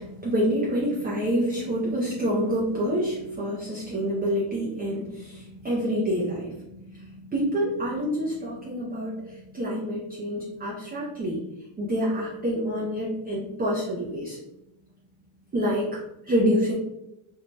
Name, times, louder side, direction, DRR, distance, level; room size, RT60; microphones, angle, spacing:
voice 1, 0.0-11.4 11.7-14.4 15.5-16.7, equal, 20° right, -6 dB, 0.4 m, -27 dB
2.6 x 2.1 x 3.0 m, 0.88 s
cardioid pair, 150°, 46 cm